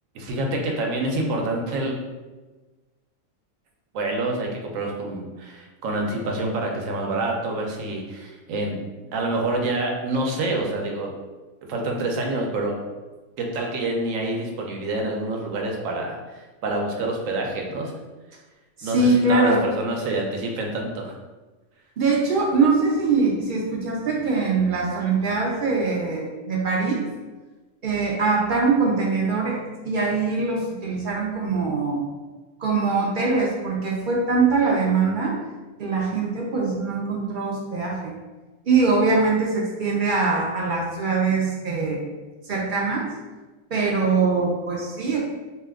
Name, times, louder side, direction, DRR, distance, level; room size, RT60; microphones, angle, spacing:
voice 1, 0.1-1.9 3.9-8.8 9.1-11.1 11.7-12.7 13.4-17.9 18.8-21.1, right 2 dB, 80° right, 1 dB, 1.0 m, -27 dB
voice 2, 18.8-19.6 22.0-27.0 27.8-29.6 29.8-32.0 32.6-35.3 35.8-38.1 38.7-42.0 42.5-43.1 43.7-45.2, right 4 dB, 60° right, -3 dB, 0.5 m, -22 dB
2.8 x 2.2 x 3.4 m, 1.2 s
omnidirectional pair, 1.3 m